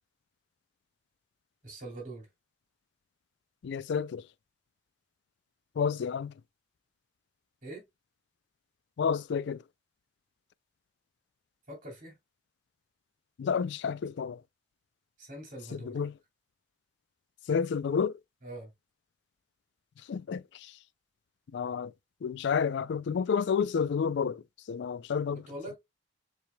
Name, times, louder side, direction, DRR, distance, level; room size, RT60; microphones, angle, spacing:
voice 1, 1.6-2.3 7.6-7.8 11.7-12.1 15.2-16.0 18.4-18.7 25.3-25.8, right 1 dB, 45° right, 2.8 m, -43 dB
voice 2, 3.6-4.3 5.8-6.3 9.0-9.6 13.4-14.4 15.7-16.1 17.5-18.2 20.1-20.8 21.5-21.9 22.2-25.4, left 6 dB, 60° left, 0.3 m, -30 dB
7.1 x 3.3 x 2.2 m
head